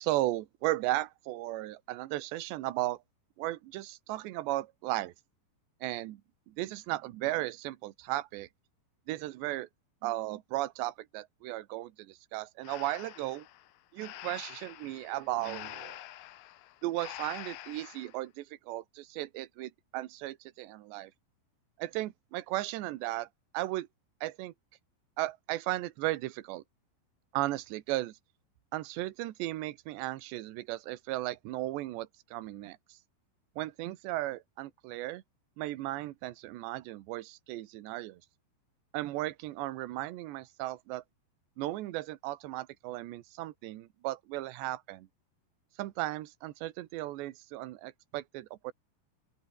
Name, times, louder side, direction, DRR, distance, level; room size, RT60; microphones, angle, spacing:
voice 1, 0.0-3.0 3.4-5.1 5.8-6.2 6.5-8.5 9.1-9.7 10.0-13.5 13.9-16.0 16.8-21.1 21.8-23.3 23.5-23.9 24.2-24.5 25.2-26.6 27.3-28.2 28.7-33.0 33.6-35.2 35.6-38.2 38.9-41.0 41.6-45.1 45.8-48.7, right 17 dB, 70° right, 3.1 m, -35 dB
Breathing, 12.6-18.2, left 15 dB, 90° left, 4.1 m, -46 dB
open air
omnidirectional pair, 5.8 m